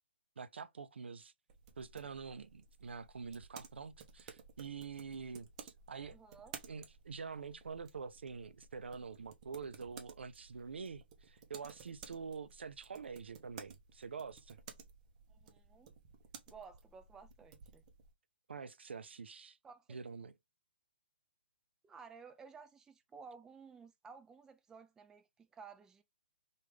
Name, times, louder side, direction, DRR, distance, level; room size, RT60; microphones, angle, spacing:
voice 1, 0.4-1.3 1.8-6.2 6.7-14.6 18.5-19.6 19.9-20.3, right 5 dB, 85° right, 0.5 m, -46 dB
sound 1, 1.5-18.1, right 6 dB, 40° right, 0.7 m, -56 dB
voice 2, 6.1-6.6 15.3-15.9 16.5-17.8 19.6-20.0 21.8-26.0, right 5 dB, 10° right, 0.4 m, -55 dB
3.1 x 2.4 x 3.3 m
hypercardioid pair, 140°, 6 cm